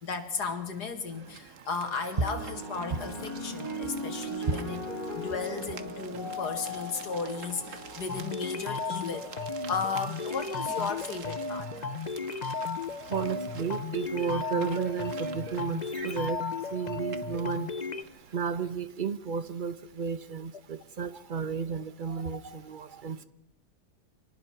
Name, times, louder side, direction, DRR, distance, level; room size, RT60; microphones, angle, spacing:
voice 1, 0.0-4.9 5.1-9.3 9.7-11.7, left 5 dB, 80° left, 8 dB, 2.6 m, -35 dB
sound 1, 1.1-18.4, right 6 dB, 55° right, 1.5 m, -48 dB
sound 2, 2.1-10.7 11.6-12.0, left 1 dB, 60° left, 7.2 m, -39 dB
sound 3, 8.1-18.0, left 4 dB, 35° left, 0.8 m, -35 dB
voice 2, 13.1-16.4 16.7-17.7 18.3-23.2, right 6 dB, 35° right, 13 dB, 1.1 m, -33 dB
25.5 x 19.5 x 6.0 m, 0.77 s
omnidirectional pair, 1.7 m